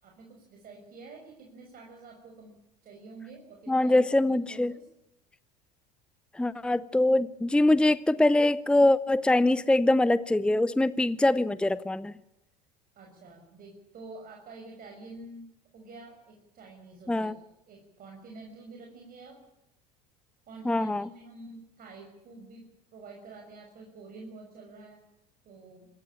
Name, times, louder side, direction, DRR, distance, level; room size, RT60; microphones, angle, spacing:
voice 1, 0.0-2.6 2.8-4.9 13.0-15.5 15.7-17.3 17.7-19.4 20.5-22.6 22.9-25.0 25.4-25.9, right 3 dB, 45° right, 1 dB, 6.1 m, -48 dB
voice 2, 3.7-4.8 6.3-12.1 17.1-17.3 20.6-21.1, left 2 dB, 5° left, 17 dB, 0.7 m, -23 dB
27.0 x 14.5 x 8.9 m, 0.91 s
hypercardioid pair, 80°, 20 cm